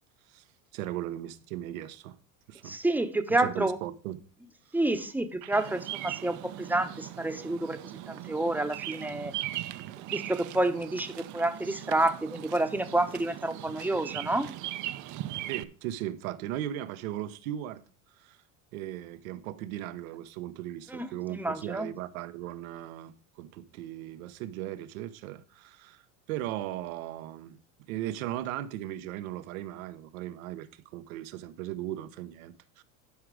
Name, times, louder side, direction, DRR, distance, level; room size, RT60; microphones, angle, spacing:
voice 1, 0.7-2.2 2.5-2.8 3.3-4.2 5.4-5.6 15.5-17.8 18.2-18.4 18.7-26.0 26.3-27.6 27.9-32.8, right 13 dB, 80° right, 0.9 m, -37 dB
voice 2, 2.6-3.8 4.7-9.3 10.1-14.5 20.9-21.9, right 2 dB, 5° right, 0.9 m, -29 dB
Bird vocalization bird call bird song, 5.5-15.6, right 14 dB, 45° right, 0.6 m, -39 dB
11.5 x 4.9 x 4.8 m
supercardioid pair, 105°, 41 cm